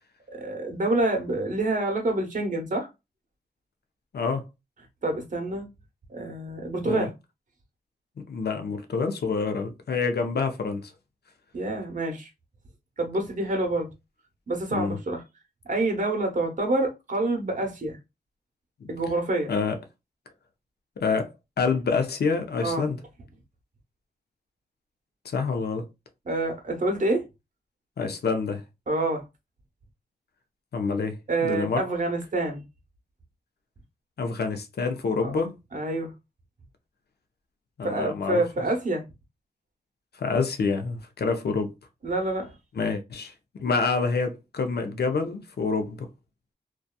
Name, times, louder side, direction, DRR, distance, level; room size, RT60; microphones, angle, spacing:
voice 1, 0.3-2.9 5.0-5.6 6.1-7.1 11.5-12.3 13.0-13.9 14.5-15.2 15.6-18.0 18.9-19.5 22.6-22.9 26.3-27.3 28.9-29.2 31.3-32.6 35.2-35.3 35.7-36.1 37.8-39.0 42.0-42.5, right 2 dB, 50° right, 0.9 m, -27 dB
voice 2, 4.1-4.4 6.9-7.1 8.2-10.9 14.7-15.0 18.8-18.9 19.5-19.8 21.0-21.3 21.6-23.0 25.2-25.9 28.0-28.6 30.7-31.2 31.4-31.8 34.2-35.5 37.8-38.4 40.2-41.7 42.8-43.3 43.6-46.1, left 4 dB, 70° left, 0.6 m, -27 dB
2.7 x 2.3 x 2.2 m
cardioid pair, 50°, 17 cm